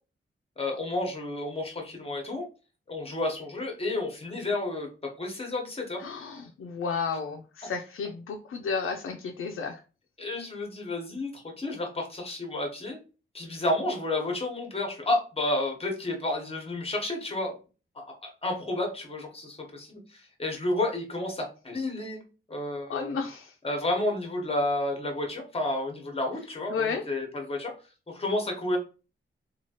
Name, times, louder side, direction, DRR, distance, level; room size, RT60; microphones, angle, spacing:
voice 1, 0.6-2.4 2.9-6.0 10.2-13.0 13.3-17.5 17.9-22.2 22.5-23.1 23.6-27.7 28.1-28.8, left 2 dB, 30° left, 1 dB, 1.0 m, -31 dB
voice 2, 6.0-9.8 22.9-23.5 26.7-27.0, left 5 dB, 75° left, 3 dB, 0.4 m, -32 dB
3.0 x 2.3 x 2.8 m, 0.34 s
wide cardioid pair, 100°, 21 cm